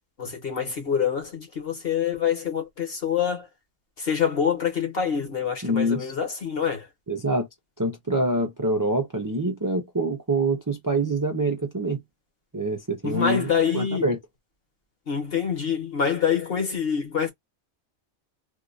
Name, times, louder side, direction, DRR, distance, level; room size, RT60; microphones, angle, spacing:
voice 1, 0.2-3.5 4.0-6.9 13.0-14.1 15.1-17.3, left 7 dB, 45° left, 1.4 m, -26 dB
voice 2, 5.6-6.1 7.1-7.5 7.8-12.0 12.5-14.2, right 1 dB, 30° right, 0.3 m, -25 dB
3.5 x 2.4 x 2.5 m
omnidirectional pair, 1.4 m